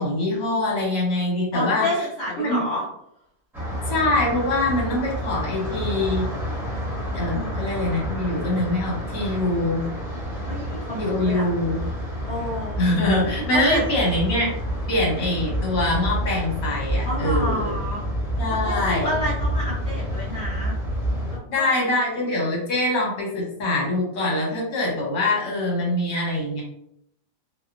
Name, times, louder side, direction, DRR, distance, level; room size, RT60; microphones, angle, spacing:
voice 1, 0.0-2.1 2.4-2.6 3.9-6.3 7.1-9.9 11.0-11.9 12.8-14.5 14.9-17.7 18.4-19.2 21.5-26.6, left 1 dB, 75° left, -3 dB, 1.4 m, -24 dB
voice 2, 1.5-2.8 7.3-7.7 10.4-11.4 12.3-13.0 13.5-13.8 17.0-18.0 18.5-20.8 21.3-21.7, left 1 dB, 55° left, -7 dB, 0.8 m, -29 dB
sound 1, 3.5-21.4, equal, ahead, 0.7 m, -29 dB
2.8 x 2.2 x 2.4 m, 0.78 s
omnidirectional pair, 1.5 m